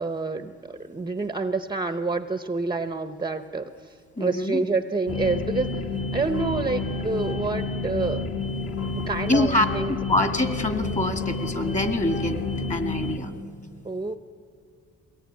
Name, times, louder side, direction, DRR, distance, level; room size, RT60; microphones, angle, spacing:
voice 1, 0.0-8.3 8.9-9.9 13.8-14.2, right 3 dB, 15° right, 9 dB, 0.8 m, -28 dB
voice 2, 4.2-4.6 9.3-9.7 10.1-12.4 12.7-13.3, left 1 dB, 25° left, 7 dB, 2.1 m, -25 dB
sound 1, 5.1-13.2, left 3 dB, 50° left, 2.6 m, -30 dB
22.5 x 18.0 x 9.3 m, 2.2 s
cardioid pair, 90°, 30 cm